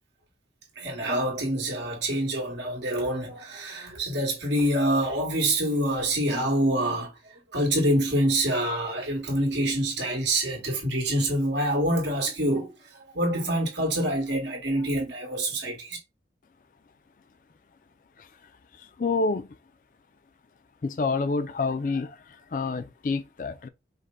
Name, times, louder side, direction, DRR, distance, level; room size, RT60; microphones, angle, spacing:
voice 1, 0.8-7.1 7.5-12.7 13.1-16.0, right 1 dB, 85° right, 1.8 m, -26 dB
voice 2, 19.0-19.5 20.8-22.1 22.5-23.7, left 3 dB, 45° left, 0.4 m, -27 dB
5.3 x 2.2 x 3.8 m
head